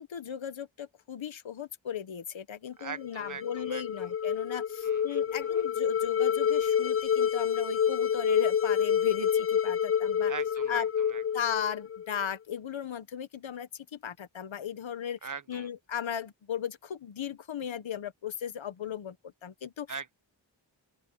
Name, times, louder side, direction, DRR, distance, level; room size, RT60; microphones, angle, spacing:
voice 1, 0.0-10.3 10.7-10.9 11.3-15.2 15.5-19.2 19.4-19.9, left 9 dB, 85° left, 1.3 m, -36 dB
voice 2, 2.8-4.1 4.8-5.7 10.3-11.4 15.2-15.7 19.9-20.1, right 5 dB, 40° right, 1.1 m, -42 dB
sound 1, 3.0-12.2, left 8 dB, 30° left, 0.4 m, -28 dB
open air
wide cardioid pair, 85°, 45 cm